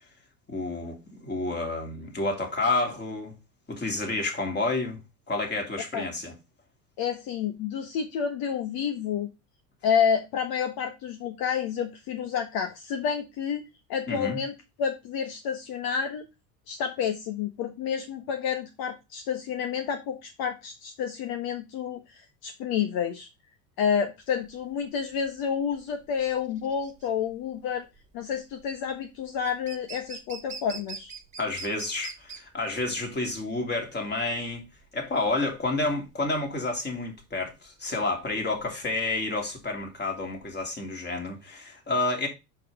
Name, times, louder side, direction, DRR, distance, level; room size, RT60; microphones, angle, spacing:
voice 1, 0.5-3.3 3.7-5.0 5.3-6.3 14.1-14.4 31.4-34.6 34.9-42.3, left 2 dB, 25° left, 3.0 m, -30 dB
voice 2, 7.0-9.3 9.8-14.5 14.8-16.3 16.7-23.3 23.8-27.8 28.1-31.1, left 7 dB, 60° left, 1.4 m, -29 dB
sound 1, 24.3-40.6, right 4 dB, 15° right, 1.7 m, -45 dB
6.5 x 6.0 x 3.6 m
supercardioid pair, 100°, 41 cm